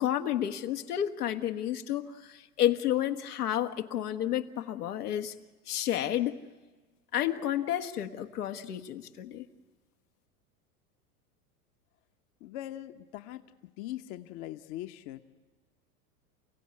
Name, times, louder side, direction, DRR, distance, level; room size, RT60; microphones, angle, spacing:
voice 1, 0.0-5.3 5.7-6.4 7.1-9.4, left 11 dB, 80° left, 6 dB, 1.6 m, -31 dB
voice 2, 12.4-13.4 13.8-15.2, left 14 dB, 50° left, 8 dB, 1.2 m, -41 dB
29.0 x 16.0 x 9.8 m, 1.3 s
hypercardioid pair, 100°, 45 cm